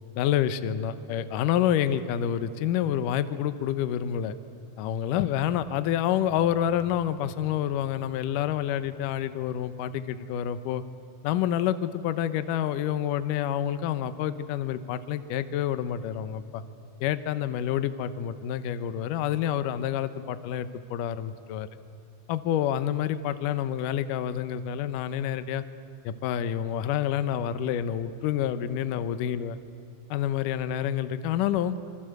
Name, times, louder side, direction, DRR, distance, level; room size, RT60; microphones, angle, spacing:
voice 1, 0.2-4.4 4.8-10.8 11.2-16.6 17.0-21.7 22.3-25.6 26.0-29.6 30.1-31.8, left 10 dB, 75° left, 12 dB, 2.3 m, -28 dB
26.5 x 24.5 x 7.9 m, 2.7 s
omnidirectional pair, 4.3 m